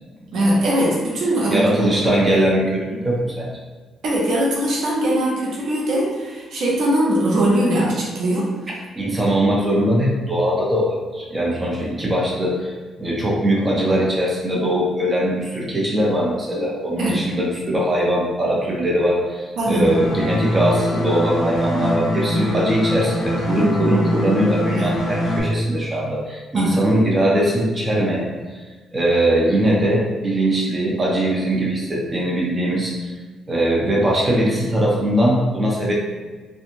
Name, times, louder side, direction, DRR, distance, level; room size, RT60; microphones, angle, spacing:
voice 1, 0.3-2.0 4.0-8.5 17.0-17.2 19.6-19.8 24.7-24.9 26.5-26.8, right 1 dB, 75° right, -4 dB, 0.7 m, -20 dB
voice 2, 1.5-3.6 9.0-12.7 13.0-28.6 28.9-33.1 33.5-35.9, right 1 dB, 25° right, -4 dB, 0.7 m, -21 dB
sound 1, 19.8-25.4, equal, 70° left, 0.9 m, -23 dB
2.9 x 2.3 x 2.6 m, 1.4 s
cardioid pair, 90°, 0 cm